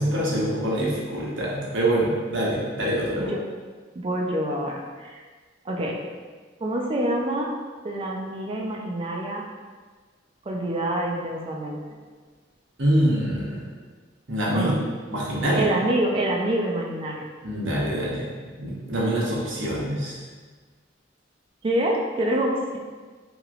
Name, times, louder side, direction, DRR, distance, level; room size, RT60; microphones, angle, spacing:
voice 1, 0.0-3.3 12.8-13.7 14.3-14.8 15.1-15.7 17.4-18.3 18.6-20.2, right 1 dB, 70° right, -5 dB, 0.8 m, -25 dB
voice 2, 4.0-5.2 5.6-6.0 6.6-7.5 7.8-9.5 10.5-11.8 14.5-14.8 15.5-17.3 21.6-22.8, right 1 dB, 30° right, -1 dB, 0.3 m, -26 dB
3.0 x 2.9 x 2.4 m, 1.5 s
head